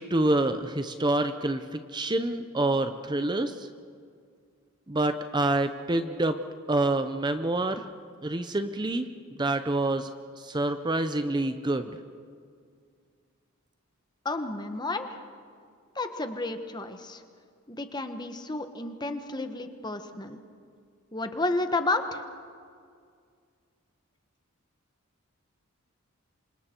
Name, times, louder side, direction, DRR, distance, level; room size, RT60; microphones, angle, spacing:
voice 1, 0.0-3.7 4.9-6.4 6.7-7.9 8.2-10.1 10.4-11.9, right 2 dB, 20° right, 9 dB, 0.6 m, -27 dB
voice 2, 14.2-15.2 15.9-17.2 17.7-20.4 21.1-22.2, left 2 dB, 20° left, 8 dB, 1.2 m, -31 dB
28.0 x 25.5 x 4.5 m, 2.2 s
head